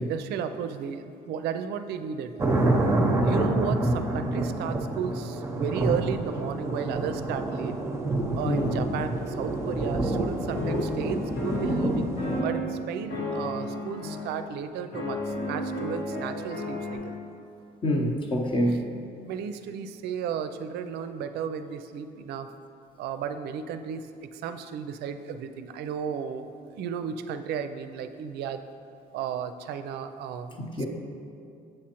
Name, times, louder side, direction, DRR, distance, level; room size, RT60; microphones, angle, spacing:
voice 1, 0.0-2.3 3.2-7.8 8.3-12.1 12.4-17.2 19.2-22.5 23.0-28.6 29.1-30.9, right 7 dB, 75° right, 9 dB, 0.4 m, -34 dB
sound 1, 2.4-12.4, right 2 dB, 15° right, 0.7 m, -27 dB
sound 2, 8.4-10.2 10.5-12.8 13.1-14.3 14.9-17.0, left 2 dB, 85° left, 1.6 m, -33 dB
voice 2, 17.8-18.8 30.6-30.9, equal, 30° left, 2 dB, 0.7 m, -26 dB
7.6 x 6.2 x 2.9 m, 2.5 s
cardioid pair, 110°, 17 cm